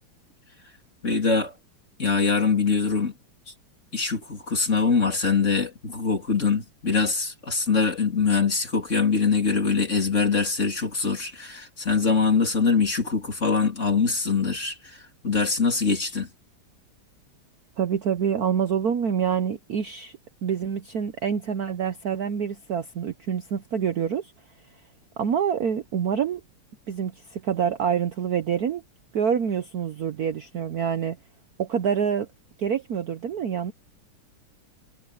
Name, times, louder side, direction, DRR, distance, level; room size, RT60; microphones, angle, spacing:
voice 1, 1.0-1.5 2.0-3.1 3.9-15.0 15.2-16.3, left 5 dB, 35° left, 3.6 m, -23 dB
voice 2, 17.8-24.3 25.2-26.4 26.9-28.8 29.1-31.2 31.6-32.3 32.6-33.7, right 7 dB, 55° right, 1.1 m, -26 dB
omnidirectional pair, 2.4 m